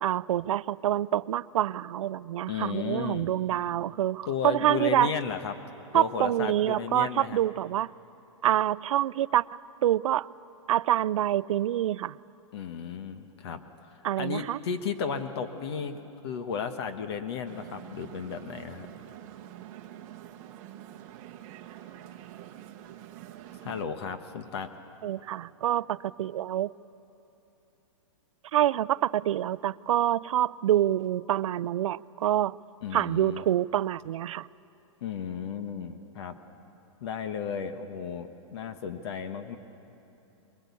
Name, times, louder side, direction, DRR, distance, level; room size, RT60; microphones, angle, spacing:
voice 1, 0.0-5.1 5.9-7.9 8.4-9.4 9.8-10.3 10.7-12.1 14.0-14.6 25.0-26.7 28.5-32.6 32.9-34.5, right 12 dB, 70° right, 20 dB, 0.4 m, -26 dB
voice 2, 2.5-3.3 4.3-5.6 5.9-7.4 12.5-13.6 14.2-18.9 23.6-24.7 32.8-33.4 35.0-36.3 37.0-39.6, left 7 dB, 50° left, 8 dB, 1.2 m, -34 dB
sound 1, 17.4-23.8, right 12 dB, 30° right, 1.0 m, -46 dB
22.0 x 20.5 x 8.4 m, 2.9 s
hypercardioid pair, 160°, 17 cm